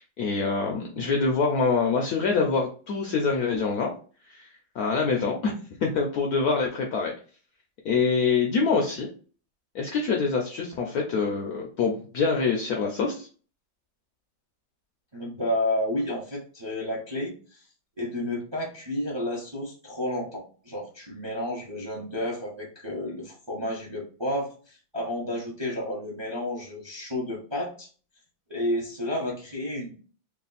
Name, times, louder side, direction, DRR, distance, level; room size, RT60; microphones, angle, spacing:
voice 1, 0.0-3.9 4.3-4.5 4.7-7.1 7.8-9.1 9.7-13.3, left 4 dB, 70° left, 1 dB, 0.8 m, -25 dB
voice 2, 15.1-17.6 18.0-27.9 28.5-30.0, left 1 dB, 25° right, -2 dB, 0.6 m, -31 dB
3.3 x 2.4 x 3.9 m, 0.40 s
omnidirectional pair, 2.1 m